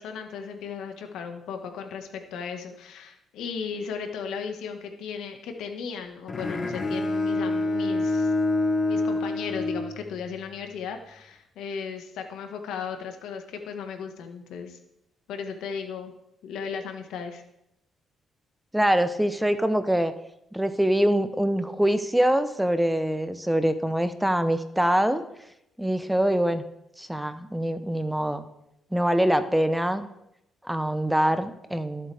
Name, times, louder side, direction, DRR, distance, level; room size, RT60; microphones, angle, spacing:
voice 1, 0.0-8.3 8.8-14.8 15.3-16.1 16.4-17.4, left 6 dB, 85° left, 5 dB, 1.6 m, -36 dB
Bowed string instrument, 6.3-10.5, left 2 dB, 40° left, 1.7 m, -27 dB
voice 2, 18.7-20.1 20.5-25.2 25.8-26.6 27.0-28.4 28.9-30.1 30.6-32.1, right 1 dB, 5° right, 10 dB, 0.9 m, -24 dB
19.0 x 7.7 x 3.5 m, 0.83 s
cardioid pair, 90°, 0 cm